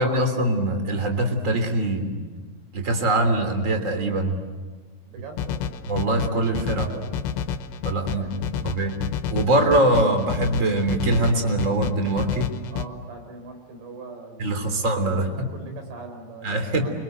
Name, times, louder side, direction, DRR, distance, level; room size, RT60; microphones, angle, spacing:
voice 1, 0.0-2.1 2.7-4.4 5.9-7.1 7.8-8.3 8.6-8.9 9.3-12.5 14.4-15.3 16.4-16.8, right 1 dB, 20° right, 6 dB, 2.9 m, -23 dB
voice 2, 5.1-5.8 8.0-8.8 12.7-16.9, right 3 dB, 75° right, 5 dB, 6.3 m, -42 dB
sound 1, 5.4-12.9, left 8 dB, 75° left, 3.1 m, -30 dB
29.5 x 25.0 x 8.0 m, 1.4 s
omnidirectional pair, 5.2 m